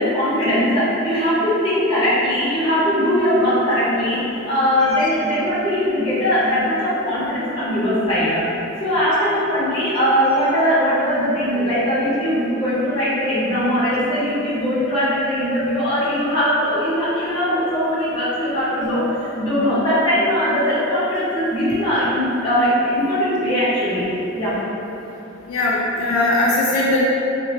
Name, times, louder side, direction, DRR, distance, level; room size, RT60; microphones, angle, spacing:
voice 1, 0.0-8.5 8.8-24.6, equal, 25° left, -12 dB, 0.9 m, -20 dB
voice 2, 25.5-27.0, left 2 dB, 80° left, -5 dB, 0.4 m, -19 dB
2.6 x 2.5 x 2.7 m, 3.0 s
head